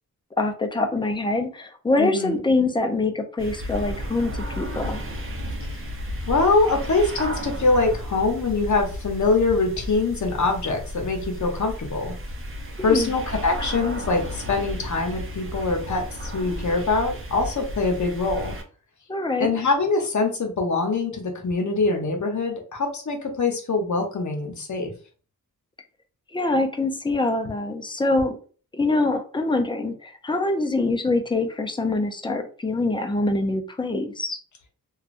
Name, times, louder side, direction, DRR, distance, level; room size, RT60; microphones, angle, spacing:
voice 1, 0.4-5.0 12.8-13.1 19.1-19.6 26.3-28.4 28.7-34.4, left 2 dB, 15° left, 5 dB, 0.5 m, -24 dB
voice 2, 2.0-2.4 6.3-12.1 12.8-18.5 19.4-24.9, left 3 dB, 50° left, 3 dB, 0.9 m, -23 dB
sound 1, 3.4-18.6, equal, 35° right, 0.7 m, -33 dB
2.9 x 2.4 x 2.5 m, 0.39 s
cardioid pair, 65°, 37 cm